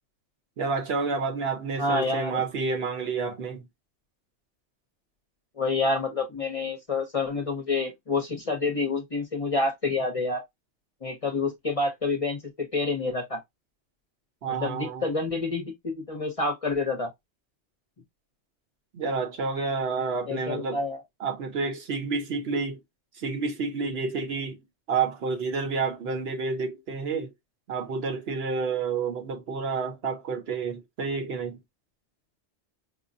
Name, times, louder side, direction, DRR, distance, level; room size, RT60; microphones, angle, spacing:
voice 1, 0.6-3.7 14.4-15.1 18.9-20.8 21.2-22.8 23.1-24.6 24.9-27.3 27.7-31.6, right 4 dB, 65° right, 1.0 m, -29 dB
voice 2, 1.8-2.4 5.6-10.4 11.0-13.4 14.6-17.1 20.3-21.0, left 3 dB, 35° left, 0.6 m, -28 dB
5.2 x 2.0 x 2.6 m
omnidirectional pair, 1.2 m